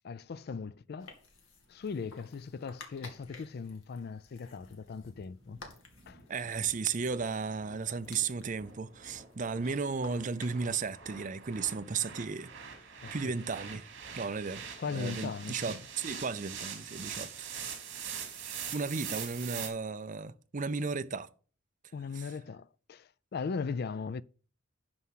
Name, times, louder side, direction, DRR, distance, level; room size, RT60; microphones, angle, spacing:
voice 1, 0.0-1.1 1.7-5.6 6.1-6.2 13.0-13.3 14.8-15.8 21.9-24.2, left 5 dB, 50° left, 0.4 m, -39 dB
sound 1, 1.0-10.9, left 3 dB, 85° left, 2.1 m, -55 dB
sound 2, 4.6-19.7, right 7 dB, 60° right, 3.1 m, -44 dB
voice 2, 6.3-12.5 13.1-13.9 14.2-14.6 14.9-17.3 18.4-21.3 22.1-22.3, right 5 dB, 40° right, 0.5 m, -34 dB
11.5 x 4.8 x 5.6 m
head